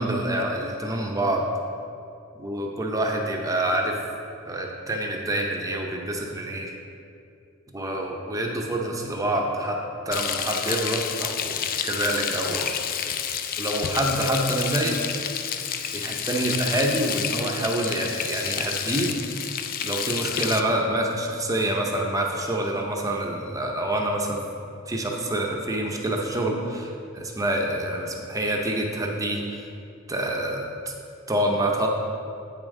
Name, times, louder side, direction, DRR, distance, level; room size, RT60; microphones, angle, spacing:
voice 1, 0.0-1.5 2.4-4.0 4.5-6.7 7.7-9.8 10.1-12.7 13.6-15.0 15.9-19.1 19.8-24.4 24.9-29.7 30.1-30.9 31.3-31.9, right 1 dB, 15° right, 1 dB, 0.6 m, -27 dB
Frying (food), 10.1-20.6, left 8 dB, 45° left, 0.3 m, -29 dB
8.3 x 5.2 x 3.7 m, 2.5 s
head